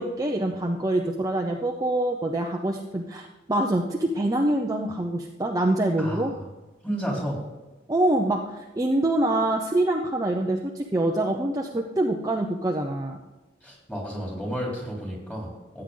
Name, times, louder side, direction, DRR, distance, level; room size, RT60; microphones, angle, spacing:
voice 1, 0.0-6.3 7.9-13.2, right 1 dB, 20° right, 1 dB, 0.8 m, -25 dB
voice 2, 6.0-6.4 6.8-7.4 13.6-15.8, equal, 5° left, -2 dB, 3.5 m, -32 dB
14.5 x 8.9 x 3.9 m, 1.1 s
head